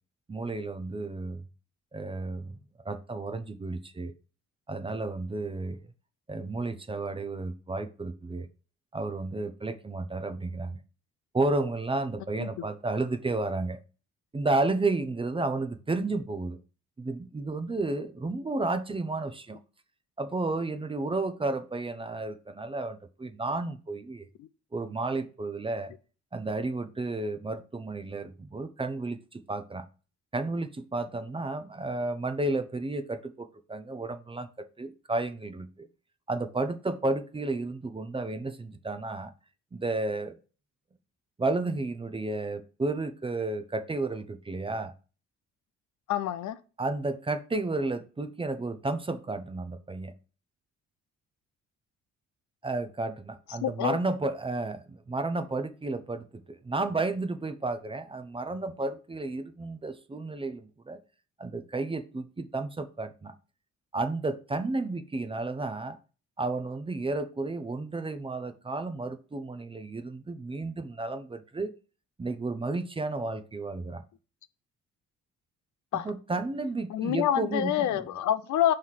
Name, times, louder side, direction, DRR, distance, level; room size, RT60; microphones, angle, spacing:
voice 1, 0.3-1.4 1.9-2.6 2.8-4.1 4.7-5.8 6.3-8.5 8.9-10.8 11.3-13.8 14.3-16.6 17.0-19.6 20.2-24.3 24.7-25.9 26.3-29.9 30.3-35.9 36.3-39.3 39.7-40.3 41.4-44.9 46.8-50.1 52.6-61.0 61.4-63.3 63.9-66.0 66.4-71.7 72.2-74.0 75.9-78.1, right 2 dB, 20° right, 0.5 m, -32 dB
voice 2, 46.1-46.6 53.6-54.0 75.9-76.1 76.9-78.7, left 11 dB, 70° left, 0.5 m, -27 dB
5.5 x 3.3 x 5.7 m
cardioid pair, 90°, 30 cm